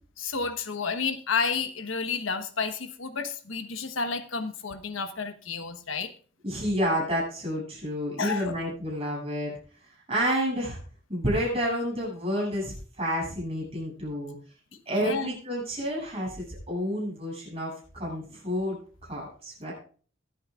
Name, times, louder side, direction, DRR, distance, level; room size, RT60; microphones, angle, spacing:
voice 1, 0.2-6.1 8.2-8.6 15.0-15.3, left 5 dB, 85° left, 10 dB, 1.2 m, -31 dB
voice 2, 6.4-9.5 10.1-10.8 11.1-14.3 14.9-18.8 19.0-19.7, equal, 30° right, -5 dB, 7.7 m, -29 dB
23.5 x 8.8 x 2.5 m, 0.42 s
head